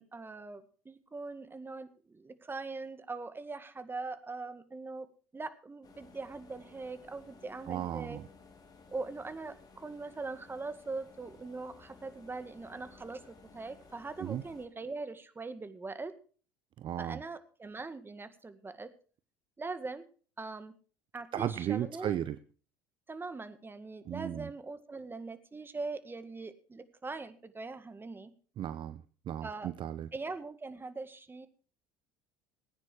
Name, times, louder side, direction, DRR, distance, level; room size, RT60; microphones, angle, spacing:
voice 1, 0.0-5.1 5.3-8.2 8.9-13.2 13.5-16.1 17.0-18.9 19.6-20.0 20.4-20.7 21.1-22.2 23.1-28.3 29.4-29.7 30.1-31.5, right 3 dB, 20° right, 11 dB, 1.9 m, -41 dB
sound 1, 5.8-14.7, left 4 dB, 35° left, 3.7 m, -57 dB
voice 2, 7.7-8.3 14.2-14.4 16.8-17.2 21.3-22.4 24.0-24.5 28.6-30.1, right 11 dB, 45° right, 14 dB, 0.8 m, -35 dB
19.5 x 9.7 x 4.9 m, 0.40 s
hypercardioid pair, 70°, 11 cm